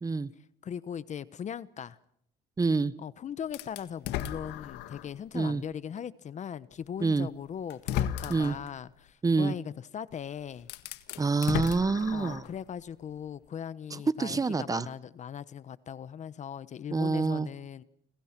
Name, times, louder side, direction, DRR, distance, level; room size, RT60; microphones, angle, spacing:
voice 1, 0.0-0.3 2.6-2.9 5.3-5.6 7.0-7.3 8.3-8.6 9.2-9.5 11.2-12.4 13.9-14.9 16.9-17.5, right 4 dB, 20° right, 1.2 m, -27 dB
voice 2, 0.6-2.0 3.0-10.7 12.1-17.8, left 8 dB, 45° left, 1.0 m, -39 dB
sound 1, 3.5-5.2 5.7-5.8 7.0-7.1 7.7-8.7 10.1-10.2 10.6-12.6, left 10 dB, 90° left, 1.8 m, -35 dB
30.0 x 26.5 x 6.0 m
cardioid pair, 110°, 17 cm